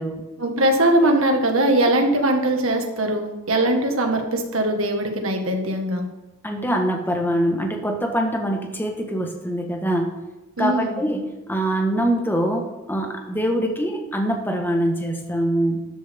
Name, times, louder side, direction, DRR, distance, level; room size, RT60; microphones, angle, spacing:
voice 1, 0.4-6.1 10.6-11.0, right 1 dB, 75° right, 3 dB, 1.8 m, -21 dB
voice 2, 6.4-10.2 10.6-15.9, equal, 10° left, 3 dB, 1.5 m, -24 dB
13.0 x 10.5 x 3.7 m, 1.1 s
head